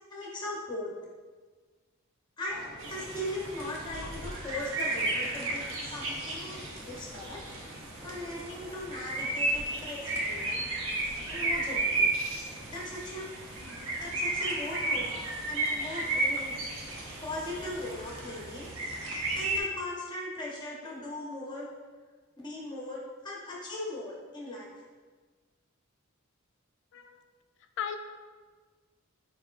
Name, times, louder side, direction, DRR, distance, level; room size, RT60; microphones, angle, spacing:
voice 1, 0.1-0.9 2.4-6.6 6.9-7.4 8.0-10.6 11.3-12.1 12.7-13.3 14.0-16.6 17.2-18.7 19.3-21.8 22.4-24.7, left 1 dB, 20° left, -4 dB, 0.8 m, -39 dB
sound 1, 2.5-19.8, equal, 20° right, 0.5 m, -51 dB
sound 2, 2.8-19.6, right 2 dB, 65° right, 0.6 m, -33 dB
voice 2, 3.6-4.1 16.7-16.8 26.9-27.2 27.8-28.0, left 8 dB, 60° left, 7 dB, 0.3 m, -38 dB
4.5 x 3.5 x 2.4 m, 1.4 s
head